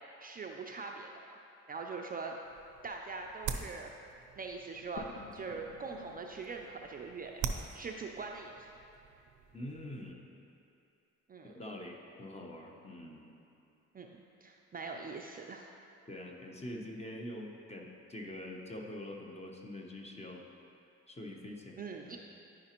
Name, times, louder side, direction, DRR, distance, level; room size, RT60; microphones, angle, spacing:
voice 1, 0.2-1.1 1.7-2.3 2.8-3.9 4.4-7.3 7.7-8.7 11.3-11.5 13.9-15.7 21.8-22.2, right 4 dB, 30° right, 1 dB, 0.4 m, -42 dB
sound 1, 2.4-10.1, right 6 dB, 80° right, 0.6 m, -45 dB
sound 2, 5.0-8.5, left 6 dB, 60° left, 0.4 m, -53 dB
voice 2, 9.5-10.5 11.4-13.3 16.1-20.4 21.1-21.8 22.0-22.2, left 1 dB, 20° left, 1 dB, 0.9 m, -45 dB
10.5 x 4.9 x 2.9 m, 2.6 s
cardioid pair, 90°, 30 cm